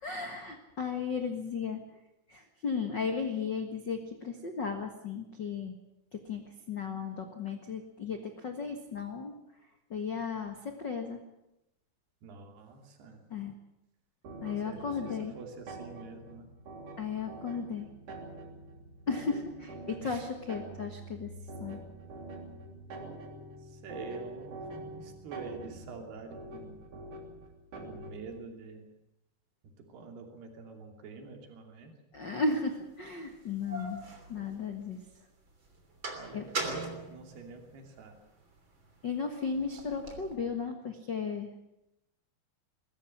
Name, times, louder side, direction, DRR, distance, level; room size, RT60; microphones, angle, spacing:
voice 1, 0.0-2.0 2.3-5.7 6.1-9.3 9.9-11.2 13.3-13.5 14.4-15.4 17.0-17.9 19.1-21.3 21.6-21.8 32.1-34.0 34.3-35.0 36.3-36.5 39.0-41.5, left 5 dB, 70° left, 5 dB, 1.0 m, -35 dB
voice 2, 12.2-13.2 14.6-16.5 20.0-20.3 23.6-26.8 27.8-28.9 29.8-31.9 36.1-38.2, right 4 dB, 70° right, 4 dB, 4.8 m, -46 dB
sound 1, 14.2-28.4, right 2 dB, 50° right, 4.5 m, -45 dB
sound 2, 32.5-32.6 33.3-35.1 35.5-38.1 38.6-40.3, right 3 dB, 30° right, 3.4 m, -40 dB
21.5 x 14.5 x 10.0 m, 0.87 s
omnidirectional pair, 4.9 m